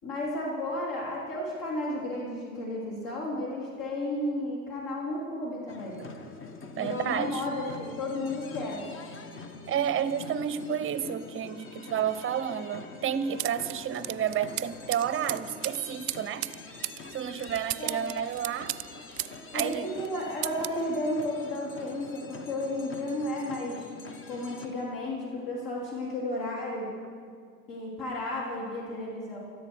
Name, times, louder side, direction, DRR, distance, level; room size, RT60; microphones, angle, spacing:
voice 1, 0.0-6.0 6.7-8.8 17.8-18.1 19.5-23.9 24.3-26.9 27.7-29.4, left 1 dB, 45° left, -4 dB, 3.7 m, -33 dB
sound 1, 5.7-24.7, left 3 dB, 30° left, 1.5 m, -45 dB
voice 2, 6.8-7.5 9.7-16.5 17.1-18.7 19.5-19.9, right 9 dB, 30° right, 13 dB, 0.9 m, -31 dB
sound 2, 13.4-19.8 20.0-20.8, right 20 dB, 50° right, 0.5 m, -36 dB
18.5 x 13.5 x 4.7 m, 2.2 s
hypercardioid pair, 85°, 45 cm